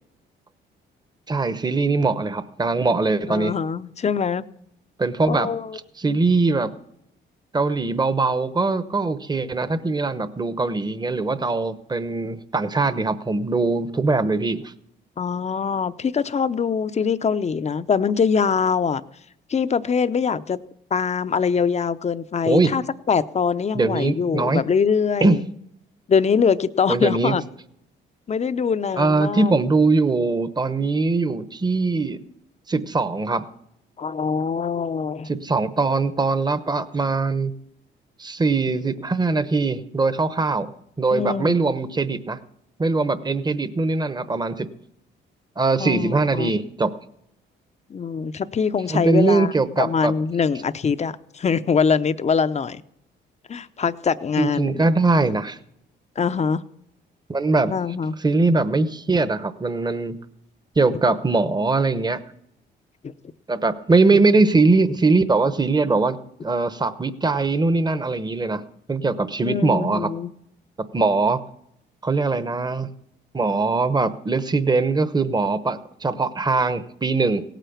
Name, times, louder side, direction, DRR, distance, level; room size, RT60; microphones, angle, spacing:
voice 1, 1.3-3.5 5.0-5.5 6.0-6.7 7.5-14.7 22.5-22.7 23.7-24.6 25.2-25.4 26.9-27.3 29.0-32.2 32.7-33.4 35.3-37.5 38.2-40.7 41.0-42.4 42.8-44.7 45.6-46.9 48.9-50.1 54.4-55.6 57.3-57.7 58.2-60.1 60.8-62.2 63.5-68.6 68.9-70.1 70.8-71.4 72.0-72.9 73.3-77.4, right 3 dB, 20° right, 13 dB, 1.0 m, -21 dB
voice 2, 3.3-4.4 5.3-5.8 15.2-19.0 19.5-20.6 20.9-25.4 26.1-27.4 28.3-29.5 34.0-35.3 41.1-41.7 45.8-46.6 47.9-49.5 49.8-52.8 53.5-54.9 56.2-56.6 57.7-58.2 63.0-63.1 69.4-70.3, left 6 dB, 35° left, 14 dB, 0.7 m, -23 dB
17.0 x 9.1 x 7.2 m, 0.74 s
cardioid pair, 90°, 20 cm